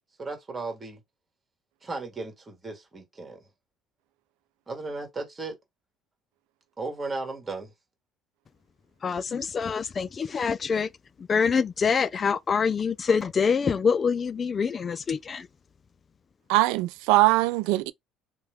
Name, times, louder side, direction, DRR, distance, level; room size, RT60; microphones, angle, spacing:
voice 1, 0.2-1.0 1.8-3.4 4.7-5.6 6.8-7.7, right 3 dB, 20° right, 1.6 m, -35 dB
voice 2, 9.0-10.9 11.3-15.5, left 6 dB, 35° left, 0.3 m, -25 dB
voice 3, 16.5-17.9, right 19 dB, 90° right, 0.3 m, -21 dB
2.8 x 2.2 x 3.4 m
cardioid pair, 110°, 0 cm